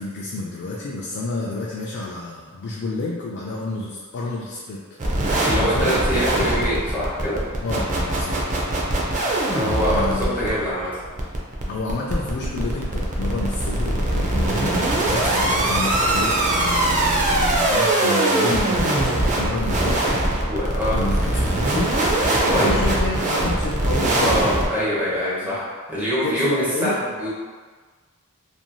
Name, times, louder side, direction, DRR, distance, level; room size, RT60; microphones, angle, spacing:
voice 1, 0.0-4.8 5.5-6.0 7.6-8.4 9.6-10.6 11.7-20.5 20.9-21.9 22.4-24.3 25.4-25.6 26.2-27.0, left 2 dB, 50° left, -4 dB, 0.3 m, -30 dB
sound 1, 5.0-24.7, right 1 dB, 35° right, 0.4 m, -22 dB
voice 2, 5.5-7.4 9.5-11.0 20.5-21.0 22.3-22.7 24.2-27.3, equal, 10° right, -9 dB, 0.9 m, -24 dB
3.0 x 2.5 x 2.2 m, 1.5 s
head